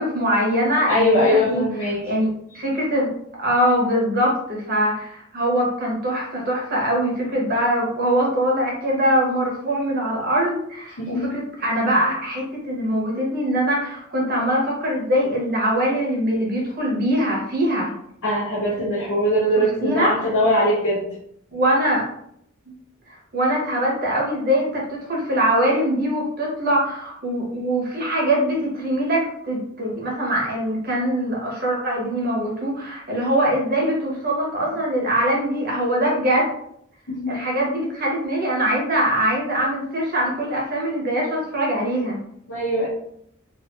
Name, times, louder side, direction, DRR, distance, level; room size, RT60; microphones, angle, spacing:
voice 1, 0.0-1.6 2.0-3.1 3.4-17.9 19.8-20.2 21.5-22.0 23.1-36.5 37.3-42.2, right 1 dB, 45° right, -3 dB, 1.1 m, -22 dB
voice 2, 0.9-2.1 11.0-11.3 18.2-21.1 37.1-37.4 42.5-42.9, equal, 80° left, -10 dB, 1.1 m, -21 dB
3.0 x 2.7 x 2.6 m, 0.71 s
head